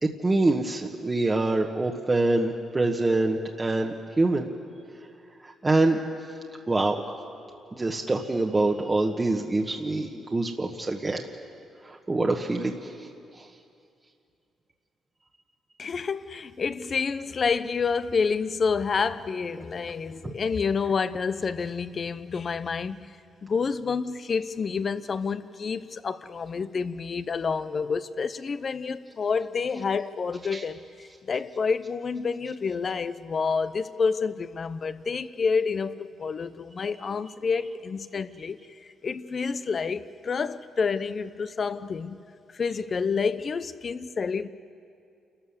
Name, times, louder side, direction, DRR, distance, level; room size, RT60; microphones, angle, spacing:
voice 1, 0.0-4.5 5.4-6.0 6.7-7.0 7.7-11.3 11.8-13.1 13.4-13.5 30.5-30.6, right 2 dB, 25° right, 1.3 m, -25 dB
voice 2, 15.8-23.2 23.4-42.2 42.5-44.5, left 5 dB, 45° left, 0.8 m, -29 dB
28.5 x 13.0 x 7.3 m
cardioid pair, 75°, 0 cm